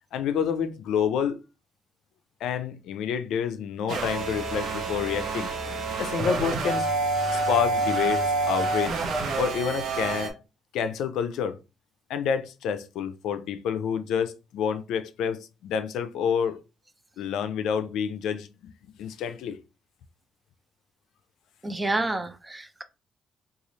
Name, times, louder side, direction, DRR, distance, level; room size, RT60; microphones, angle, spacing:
voice 1, 0.1-1.4 2.4-5.5 6.0-6.9 7.3-9.0 9.4-10.4 10.7-11.6 12.1-16.6 17.2-18.5 19.0-19.6, left 7 dB, 85° left, 0.4 m, -28 dB
sound 1, 3.9-10.3, right 3 dB, 70° right, 0.8 m, -27 dB
voice 2, 21.6-22.8, right 2 dB, 20° right, 0.5 m, -29 dB
3.1 x 2.4 x 3.9 m
cardioid pair, 90°, 0 cm